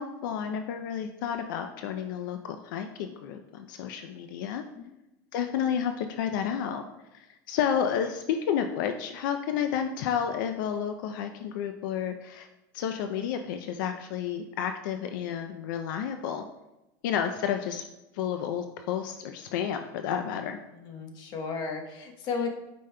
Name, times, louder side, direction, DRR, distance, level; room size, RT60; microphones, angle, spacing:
voice 1, 0.0-4.6 5.3-6.8 7.1-12.5 12.7-16.4 17.0-17.8 18.1-20.6, left 8 dB, 75° left, 7 dB, 0.4 m, -31 dB
voice 2, 20.8-22.5, left 5 dB, 40° left, 3 dB, 0.9 m, -34 dB
9.1 x 5.1 x 2.2 m, 0.98 s
supercardioid pair, 155°, 11 cm